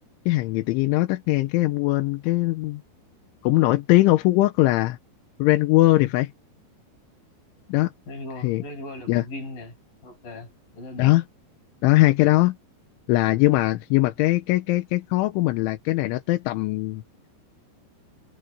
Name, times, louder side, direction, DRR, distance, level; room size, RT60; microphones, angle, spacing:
voice 1, 0.3-2.8 3.4-5.0 5.4-6.3 7.7-7.9 8.4-8.6 9.1-9.2 11.0-11.2 11.8-12.6 13.1-17.0, left 18 dB, 90° left, 3.4 m, -20 dB
voice 2, 8.1-9.8 10.0-11.2, left 1 dB, 45° left, 9.7 m, -38 dB
omnidirectional pair, 5.3 m